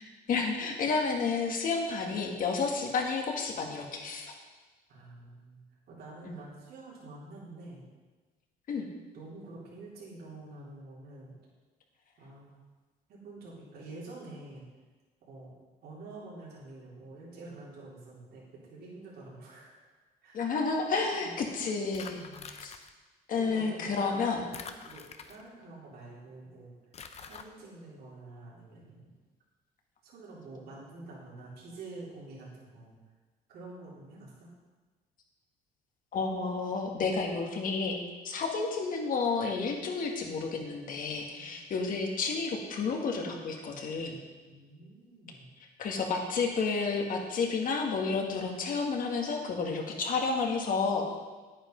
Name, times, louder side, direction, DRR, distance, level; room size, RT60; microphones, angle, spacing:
voice 1, 0.3-4.3 6.2-6.3 8.7-8.9 20.3-22.7 23.3-24.4 36.1-38.0 38.2-44.2 45.8-51.0, left 4 dB, 55° left, 1 dB, 2.0 m, -31 dB
voice 2, 4.9-5.6 5.9-7.8 9.1-11.3 12.2-12.5 13.1-14.6 15.2-15.5 15.8-19.7 20.2-20.5 21.0-21.4 22.0-22.5 23.3-26.7 27.2-29.1 30.0-33.0 33.5-34.5 41.3-41.6 44.4-45.5, right 2 dB, 70° right, -6 dB, 3.7 m, -47 dB
sound 1, 21.9-22.9 24.5-25.6 26.9-27.4, left 6 dB, 40° left, 0.8 m, -45 dB
9.9 x 8.8 x 5.4 m, 1.3 s
cardioid pair, 110°, 17 cm